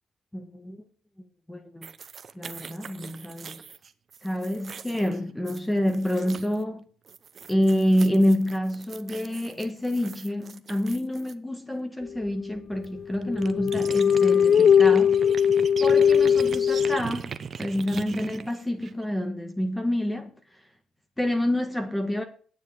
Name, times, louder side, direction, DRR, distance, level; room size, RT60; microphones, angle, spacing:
voice 1, 0.3-0.8 1.5-1.9 2.3-3.6 4.2-6.9 7.5-15.2 15.8-17.3 17.6-20.6 21.2-22.2, left 1 dB, 10° left, 1.6 m, -27 dB
sound 1, 1.8-6.6 7.1-11.3 12.8-12.9 13.1-19.1, right 6 dB, 45° right, 0.9 m, -41 dB
sound 2, 12.3-12.4 13.0-17.0, left 8 dB, 50° left, 0.4 m, -20 dB
9.3 x 7.4 x 8.6 m
cardioid pair, 90°, 0 cm